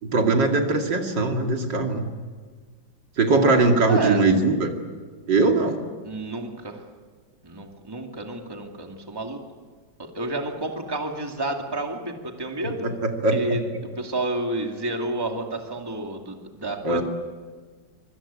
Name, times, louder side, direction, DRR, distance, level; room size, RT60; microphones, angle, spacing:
voice 1, 0.0-2.1 3.2-4.7 5.3-5.8 12.8-13.6 16.8-17.0, right 3 dB, 65° right, 3 dB, 3.1 m, -21 dB
voice 2, 3.9-4.2 6.0-6.8 7.4-9.4 10.0-12.9 13.3-13.6 14.0-17.0, right 2 dB, 10° right, 2 dB, 2.3 m, -30 dB
25.0 x 24.5 x 8.8 m, 1.5 s
omnidirectional pair, 2.1 m